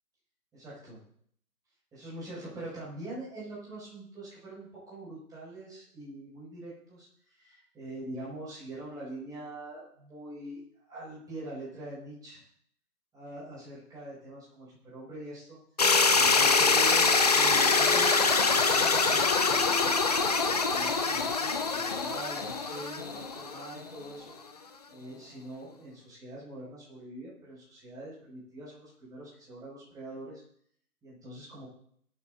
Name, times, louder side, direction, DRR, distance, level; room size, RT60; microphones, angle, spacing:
voice 1, 0.5-1.0 1.9-7.1 7.4-10.6 10.9-12.4 13.1-15.6 16.1-20.1 20.6-24.4 24.9-30.4 31.0-31.7, right 1 dB, 10° right, -8 dB, 6.2 m, -43 dB
sound 1, 15.8-23.8, left 4 dB, 25° left, 0.6 m, -24 dB
22.0 x 9.9 x 2.7 m, 0.65 s
figure-of-eight pair, 150°, 46 cm